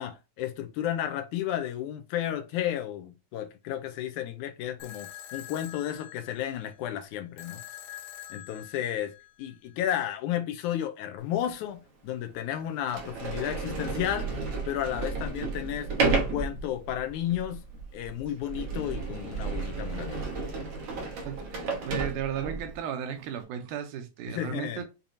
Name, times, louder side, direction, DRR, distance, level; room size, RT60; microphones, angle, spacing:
voice 1, 0.0-7.6 8.3-9.1 9.4-14.3 14.7-17.6 17.9-20.5 24.3-24.8, left 11 dB, 85° left, 2.1 m, -33 dB
sound 1, 4.8-9.8, left 12 dB, 70° left, 1.7 m, -46 dB
Sliding door, 11.5-11.6 12.3-12.4 12.8-22.8, right 3 dB, 60° right, 1.2 m, -32 dB
voice 2, 21.2-24.9, right 9 dB, 85° right, 2.2 m, -35 dB
6.9 x 2.9 x 2.7 m
omnidirectional pair, 3.5 m